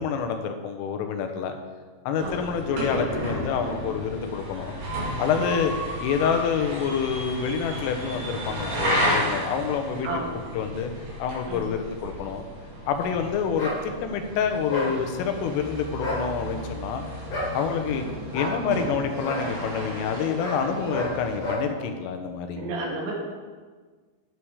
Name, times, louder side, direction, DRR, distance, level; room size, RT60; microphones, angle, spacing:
voice 1, 0.0-1.6 2.1-4.7 5.2-5.7 6.0-10.1 10.5-10.9 11.2-12.4 12.9-17.0 17.5-18.0 18.3-22.6, left 6 dB, 85° left, 6 dB, 3.6 m, -27 dB
sound 1, 2.1-21.5, equal, 45° right, 4.2 m, -33 dB
sound 2, 13.6-13.8 14.7-14.9 15.9-16.2 17.3-17.5 18.3-18.6 19.2-19.4 20.4-20.6 20.9-21.1 21.4-21.6, left 1 dB, 35° left, 5.1 m, -30 dB
voice 2, 22.6-23.1, right 2 dB, 65° right, -3 dB, 4.5 m, -31 dB
12.0 x 9.5 x 4.9 m, 1.5 s
omnidirectional pair, 5.7 m